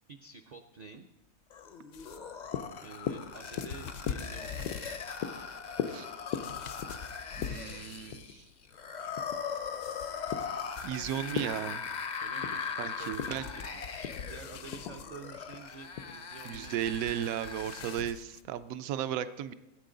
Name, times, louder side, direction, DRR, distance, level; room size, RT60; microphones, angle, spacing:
voice 1, 0.1-1.1 2.8-4.7 10.9-11.4 12.2-16.8, right 4 dB, 55° right, 4 dB, 0.4 m, -49 dB
sound 1, 1.5-18.1, left 6 dB, 50° left, 0.5 m, -40 dB
sound 2, 1.9-8.3 8.6-11.9 12.6-12.7 12.9-18.7, left 7 dB, 65° left, 0.9 m, -46 dB
sound 3, 2.2-16.7, left 9 dB, 85° left, 1.1 m, -41 dB
voice 2, 7.4-8.4 10.8-11.8 12.8-13.5 16.4-19.5, right 10 dB, 75° right, 13 dB, 1.0 m, -35 dB
16.0 x 8.3 x 3.8 m, 0.98 s
omnidirectional pair, 1.5 m